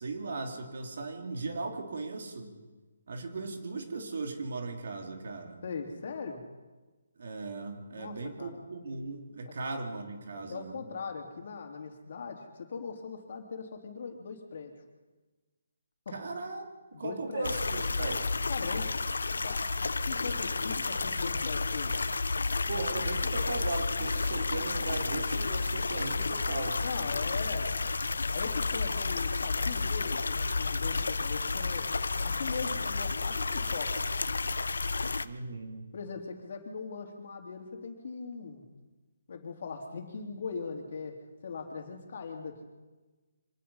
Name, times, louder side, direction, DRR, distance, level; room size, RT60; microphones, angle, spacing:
voice 1, 0.0-2.5 3.1-5.6 7.2-10.8 16.1-16.7 16.9-18.3 22.7-26.8 35.2-35.9, right 3 dB, 65° right, 4 dB, 3.3 m, -37 dB
voice 2, 5.6-6.4 7.9-8.6 9.5-9.6 10.5-14.7 16.0-16.1 16.9-17.5 18.5-18.9 19.4-22.0 26.8-27.9 28.3-31.9 32.2-34.0 35.9-38.6 39.3-41.1 41.4-42.6, left 5 dB, 55° left, 3 dB, 3.4 m, -40 dB
sound 1, 17.4-35.3, left 3 dB, 85° left, 0.9 m, -31 dB
25.0 x 19.0 x 5.7 m, 1.2 s
hypercardioid pair, 160°, 0 cm